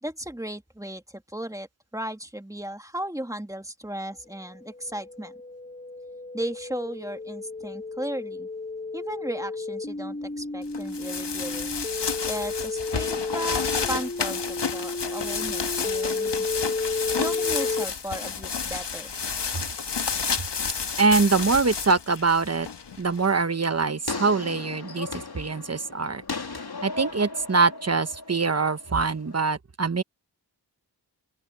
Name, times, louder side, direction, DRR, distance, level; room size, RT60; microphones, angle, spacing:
voice 1, 0.0-1.7 1.9-5.3 6.3-8.5 8.9-11.8 12.3-16.5 17.2-19.2, right 1 dB, 10° right, 2.0 m, -35 dB
sound 1, 4.6-17.8, left 3 dB, 20° left, 1.0 m, -32 dB
sound 2, 10.7-23.3, left 5 dB, 80° left, 1.4 m, -31 dB
voice 2, 21.0-22.7 23.0-26.2 26.8-30.0, right 4 dB, 40° right, 1.1 m, -24 dB
sound 3, 23.2-29.4, left 3 dB, 65° left, 2.6 m, -37 dB
open air
wide cardioid pair, 70°, 41 cm